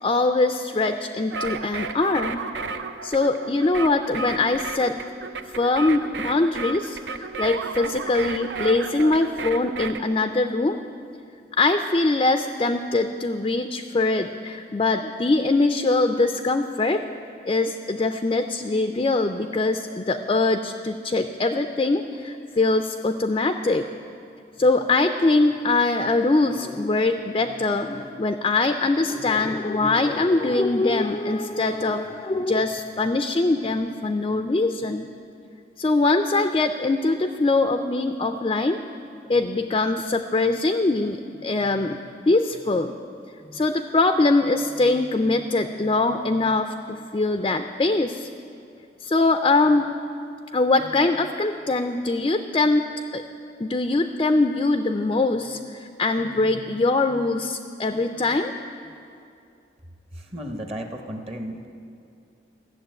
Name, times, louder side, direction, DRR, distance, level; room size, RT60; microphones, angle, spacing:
voice 1, 0.0-2.4 3.0-5.0 5.5-10.8 11.6-17.0 17.4-23.9 24.6-35.1 35.8-38.8 39.3-42.0 42.3-42.9 43.5-48.3 49.0-49.9 50.5-53.2 53.6-58.5, left 2 dB, 30° left, 7 dB, 0.4 m, -22 dB
sound 1, 1.3-10.0, right 4 dB, 80° right, 0.6 m, -33 dB
voice 2, 60.1-61.7, equal, 35° right, 4 dB, 0.8 m, -34 dB
14.0 x 7.1 x 9.1 m, 2.5 s
head